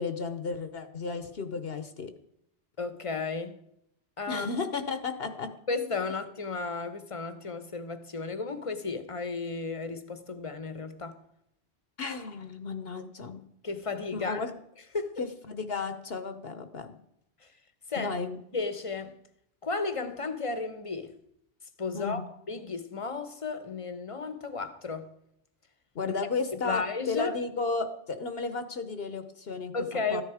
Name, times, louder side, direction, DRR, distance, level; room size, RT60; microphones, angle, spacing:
voice 1, 0.0-2.1 4.3-5.5 12.0-13.4 14.1-14.5 15.2-16.9 18.0-18.4 21.9-22.3 25.9-30.2, left 4 dB, 60° left, 1.1 m, -33 dB
voice 2, 2.8-3.5 4.2-4.5 5.7-11.2 13.6-14.4 14.9-15.1 17.9-18.2 18.5-19.2 19.6-21.1 21.8-25.1 26.0-26.1 26.5-27.4 29.7-30.2, left 4 dB, 30° left, 0.9 m, -33 dB
13.5 x 10.0 x 4.9 m
omnidirectional pair, 1.1 m